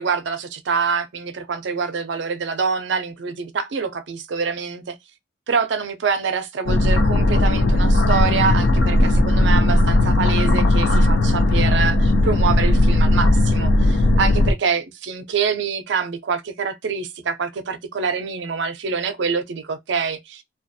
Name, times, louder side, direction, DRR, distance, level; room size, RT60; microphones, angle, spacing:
voice 1, 0.0-5.0 5.5-20.4, right 5 dB, 70° right, 0.4 m, -25 dB
sound 1, 6.6-14.5, left 1 dB, 70° left, 0.4 m, -17 dB
2.4 x 2.2 x 2.6 m
head